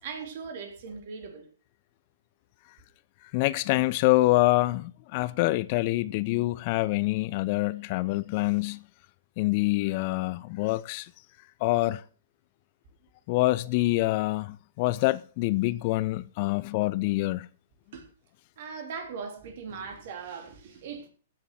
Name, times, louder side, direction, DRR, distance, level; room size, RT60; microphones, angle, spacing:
voice 1, 0.0-1.5 17.9-18.0 18.6-21.1, right 5 dB, 55° right, 3.4 m, -39 dB
voice 2, 3.3-8.8 9.4-11.1 11.6-12.0 13.3-17.5, left 19 dB, 45° left, 0.6 m, -26 dB
15.0 x 6.9 x 6.2 m
figure-of-eight pair, 110°, 0 cm